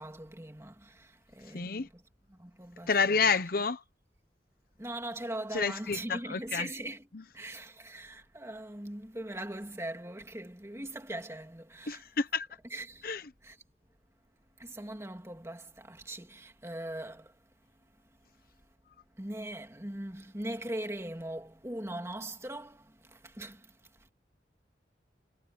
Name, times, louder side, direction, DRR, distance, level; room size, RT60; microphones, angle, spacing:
voice 1, 0.0-2.0 2.4-3.2 4.8-7.1 7.3-12.0 12.7-13.1 13.4-13.6 14.6-17.3 19.2-22.8 23.2-23.6, right 1 dB, 15° right, 2.4 m, -40 dB
voice 2, 1.5-1.9 2.9-3.8 5.5-6.7 11.9-12.5 13.0-13.2, left 5 dB, 55° left, 0.9 m, -29 dB
head